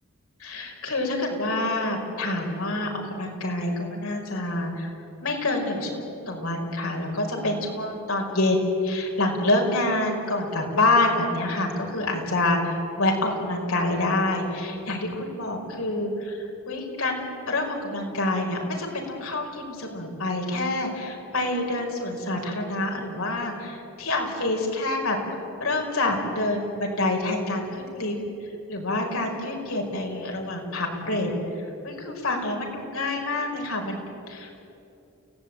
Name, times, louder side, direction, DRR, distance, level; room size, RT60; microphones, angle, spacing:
voice 1, 0.4-4.9 5.2-8.6 8.8-34.6, left 2 dB, 75° left, 1 dB, 5.3 m, -27 dB
29.5 x 17.5 x 9.0 m, 2.8 s
head